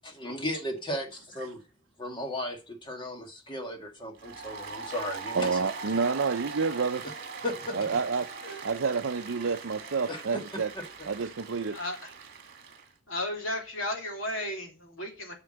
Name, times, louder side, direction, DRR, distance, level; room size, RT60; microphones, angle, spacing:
voice 1, 0.2-1.6 2.0-5.6 7.4-8.0 10.1-10.4 10.7-11.1, left 1 dB, 25° left, 1.8 m, -36 dB
Applause, 4.2-12.9, right 4 dB, 45° right, 2.0 m, -41 dB
voice 2, 5.3-7.0 7.7-8.3 8.6-10.7 11.1-11.8, right 5 dB, 65° right, 0.6 m, -29 dB
voice 3, 11.7-12.0 13.1-15.3, left 1 dB, 70° left, 2.9 m, -34 dB
8.1 x 5.9 x 7.7 m
head